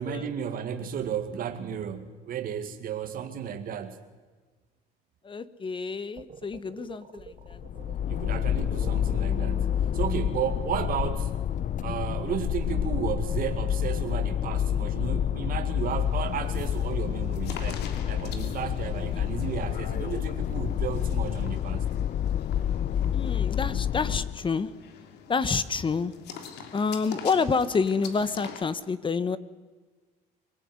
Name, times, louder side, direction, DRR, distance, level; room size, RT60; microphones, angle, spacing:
voice 1, 0.0-4.0 8.1-11.3 11.8-21.9, right 8 dB, 60° right, 5 dB, 2.1 m, -33 dB
voice 2, 5.2-7.6 19.0-19.3 23.1-24.7 25.3-26.1 26.7-29.4, left 5 dB, 30° left, 15 dB, 1.2 m, -28 dB
sound 1, 6.2-10.6, right 7 dB, 40° right, 1.7 m, -48 dB
sound 2, 7.2-24.5, left 10 dB, 50° left, 0.7 m, -28 dB
sound 3, 15.8-28.6, left 7 dB, 80° left, 3.2 m, -45 dB
24.5 x 19.0 x 9.6 m, 1.3 s
cardioid pair, 110°, 17 cm